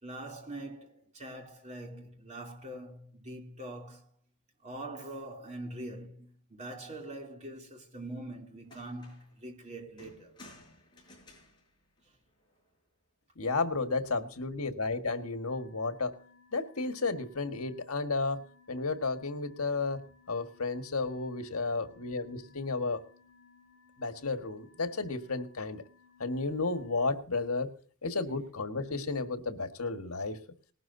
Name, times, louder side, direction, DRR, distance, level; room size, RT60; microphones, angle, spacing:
voice 1, 0.0-4.1 4.6-10.4, right 1 dB, 30° right, 3.1 m, -43 dB
sound 1, 8.2-8.3 8.7-9.4 10.0-12.7 13.9-14.4, left 1 dB, 20° left, 6.4 m, -56 dB
voice 2, 13.4-16.1 16.5-18.4 18.7-20.0 20.3-23.0 24.0-25.8 26.2-27.7 28.0-30.4, left 3 dB, 75° left, 1.6 m, -32 dB
sound 2, 15.5-27.1, left 5 dB, 55° left, 3.8 m, -62 dB
19.5 x 12.5 x 2.7 m
head